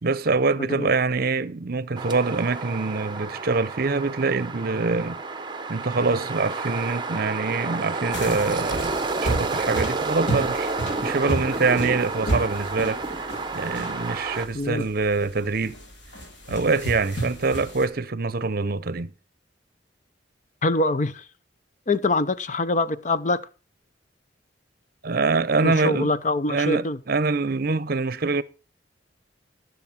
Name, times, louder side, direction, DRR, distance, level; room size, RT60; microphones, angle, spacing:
voice 1, 0.0-5.2 5.7-10.7 11.0-15.8 16.5-19.1 25.0-26.1 26.5-28.4, right 3 dB, 55° right, 0.7 m, -25 dB
voice 2, 0.6-0.9 14.5-14.9 20.6-21.3 21.9-23.5 25.6-27.0, left 2 dB, 40° left, 0.7 m, -24 dB
sound 1, 2.0-14.5, right 3 dB, 25° right, 0.9 m, -30 dB
sound 2, 8.1-17.9, right 2 dB, 80° left, 3.4 m, -32 dB
14.5 x 7.0 x 5.8 m
head